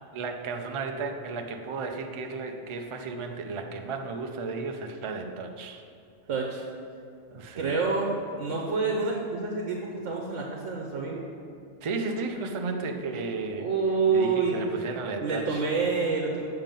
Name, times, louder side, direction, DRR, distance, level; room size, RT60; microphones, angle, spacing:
voice 1, 0.1-5.9 7.3-7.8 11.8-13.7 14.1-15.6, right 4 dB, 40° right, 4 dB, 0.4 m, -34 dB
voice 2, 6.3-6.6 7.6-11.2 13.6-14.5 15.2-16.5, right 4 dB, 75° right, -1 dB, 1.2 m, -27 dB
7.3 x 5.8 x 5.3 m, 2.4 s
omnidirectional pair, 1.3 m